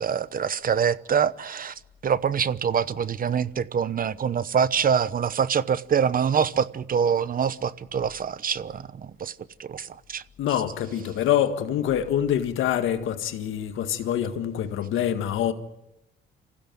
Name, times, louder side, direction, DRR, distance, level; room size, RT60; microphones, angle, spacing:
voice 1, 0.0-10.2, right 7 dB, 45° right, 0.9 m, -25 dB
voice 2, 10.4-15.5, left 10 dB, 85° left, 1.7 m, -25 dB
26.0 x 16.0 x 9.2 m
cardioid pair, 90°, 20 cm